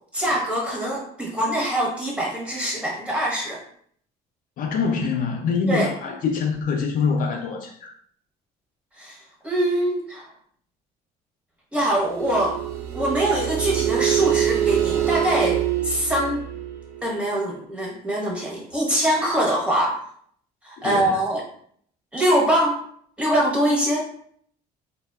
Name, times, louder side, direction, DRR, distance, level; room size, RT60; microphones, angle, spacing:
voice 1, 0.1-3.6 5.7-5.9 9.0-10.3 11.7-12.6 12.9-15.6 15.8-16.4 17.0-20.0 20.6-21.4 22.1-22.8 23.2-24.1, right 1 dB, 5° right, -3 dB, 0.9 m, -23 dB
voice 2, 4.6-7.9 20.8-21.2, left 5 dB, 55° left, 2 dB, 0.4 m, -25 dB
sound 1, 12.1-17.5, right 11 dB, 65° right, 0.5 m, -25 dB
3.2 x 2.2 x 2.2 m, 0.62 s
cardioid pair, 110°, 17 cm